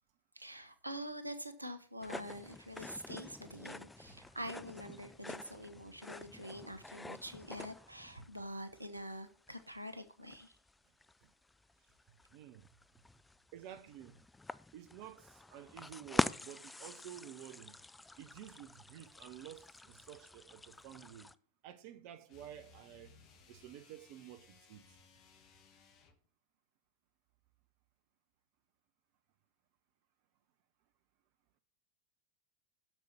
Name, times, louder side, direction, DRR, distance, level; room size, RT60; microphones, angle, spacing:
voice 1, 0.3-10.6, equal, 85° right, 1.0 m, -46 dB
sound 1, 2.0-21.4, left 2 dB, 10° left, 0.4 m, -45 dB
voice 2, 12.3-12.6 13.5-14.2 14.7-17.7 18.2-21.3 21.6-23.2 23.5-25.0, right 11 dB, 45° right, 0.8 m, -51 dB
sound 2, 22.3-26.3, left 5 dB, 40° left, 1.5 m, -63 dB
7.6 x 6.8 x 6.9 m
figure-of-eight pair, 90°, 0 cm